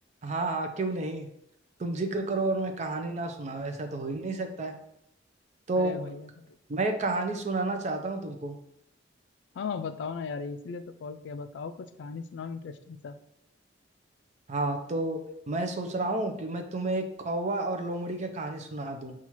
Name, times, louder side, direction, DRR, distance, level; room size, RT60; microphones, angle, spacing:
voice 1, 0.2-1.3 1.8-4.8 5.7-6.0 6.7-8.6 14.5-15.2 15.5-19.1, right 2 dB, 40° right, 5 dB, 0.4 m, -30 dB
voice 2, 5.7-6.5 9.6-13.2, left 5 dB, 65° left, 10 dB, 0.3 m, -37 dB
5.6 x 2.4 x 2.9 m, 0.78 s
head